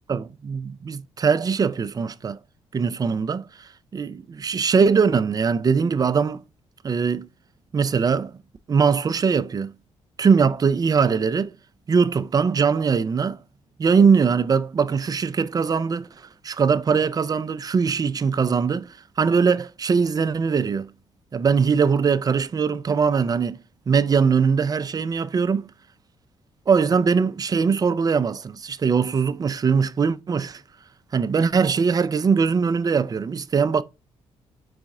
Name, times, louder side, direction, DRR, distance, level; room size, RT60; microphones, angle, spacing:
voice 1, 0.1-2.4 2.7-6.4 6.8-7.3 7.7-8.3 8.7-9.7 10.2-11.5 11.9-13.4 13.8-16.1 16.4-18.9 19.2-20.9 21.3-23.6 23.9-25.7 26.7-30.6 31.1-33.8, right 5 dB, 30° right, 0.4 m, -21 dB
4.0 x 2.3 x 3.7 m
cardioid pair, 70°, 12 cm